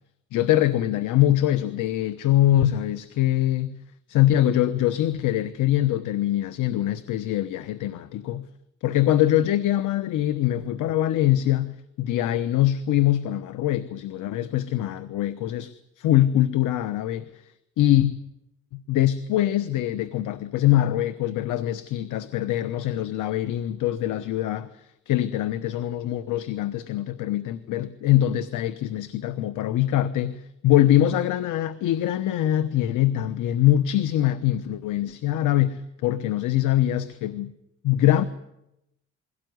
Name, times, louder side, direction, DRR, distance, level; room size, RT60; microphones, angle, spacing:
voice 1, 0.3-3.8 4.1-8.5 8.8-17.5 17.8-18.1 18.7-37.5 37.8-38.2, left 13 dB, 85° left, 1.0 m, -23 dB
22.0 x 17.5 x 9.5 m
cardioid pair, 90°, 30 cm